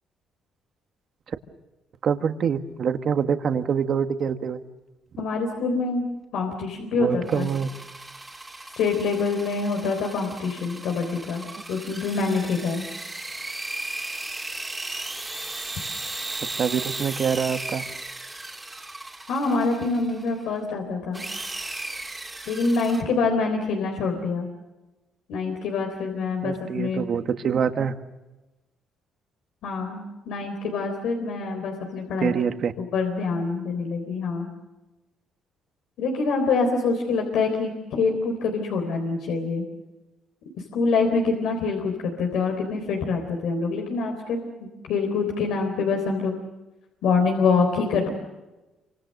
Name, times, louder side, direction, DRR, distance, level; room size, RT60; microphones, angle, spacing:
voice 1, 2.0-4.6 6.9-7.7 16.6-17.8 26.4-28.0 32.2-32.7, right 7 dB, 45° right, 9 dB, 1.6 m, -25 dB
voice 2, 5.2-6.0 6.3-7.5 8.8-11.4 11.7-12.9 19.3-21.2 22.5-24.5 25.3-27.0 29.6-32.3 32.8-34.5 36.0-39.6 40.7-46.3 47.0-48.1, left 4 dB, 80° left, 2 dB, 3.8 m, -25 dB
sound 1, 7.2-20.4 21.1-23.0, right 2 dB, 10° right, 2.8 m, -36 dB
28.0 x 25.5 x 6.6 m, 1.1 s
cardioid pair, 160°, 0 cm